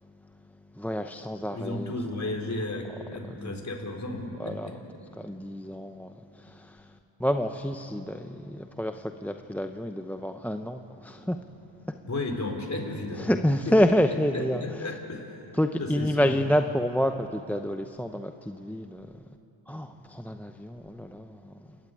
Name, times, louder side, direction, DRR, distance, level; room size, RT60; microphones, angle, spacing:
voice 1, 0.7-1.9 3.3-3.6 4.4-4.7 5.2-6.9 7.2-11.4 11.9-12.0 13.2-14.6 15.5-19.2 19.7-21.7, equal, 5° left, 6 dB, 0.8 m, -28 dB
voice 2, 1.5-4.8 12.0-13.7 14.3-15.3 15.8-16.3, left 2 dB, 35° left, 2 dB, 4.2 m, -34 dB
29.0 x 12.5 x 9.2 m, 3.0 s
cardioid pair, 60°, 48 cm